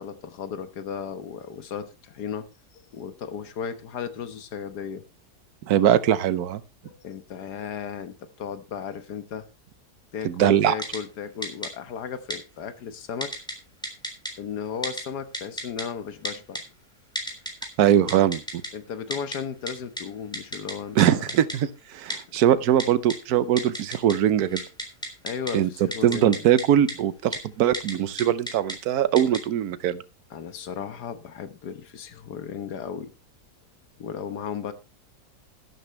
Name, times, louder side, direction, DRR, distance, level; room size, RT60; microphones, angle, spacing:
voice 1, 0.0-2.5 2.7-5.0 6.8-9.5 10.1-13.3 14.4-16.6 18.7-21.2 25.2-26.3 30.3-33.1 34.0-34.7, left 7 dB, 85° left, 11 dB, 1.7 m, -35 dB
voice 2, 5.7-6.6 10.2-10.7 17.8-18.6 21.0-24.6 25.5-30.0, right 10 dB, 75° right, 15 dB, 1.2 m, -21 dB
Typing, 10.8-11.0 11.4-11.7 12.3-12.4 13.2-13.5 13.8-14.3 14.8-15.0 15.3-15.8 16.2-16.6 17.2-17.7 18.1-18.7 19.1-19.4 19.7-19.8 20.0-20.1 20.3-20.7 21.0-21.1 21.3-21.6 22.1-22.2 22.8-23.2 23.6-24.1 24.4-25.5 25.9-26.6 26.9-27.0 27.3-27.4 27.7-27.9 28.2-28.7 29.2-29.4, equal, 5° left, 3.5 m, -31 dB
12.5 x 12.0 x 3.2 m, 0.30 s
omnidirectional pair, 1.7 m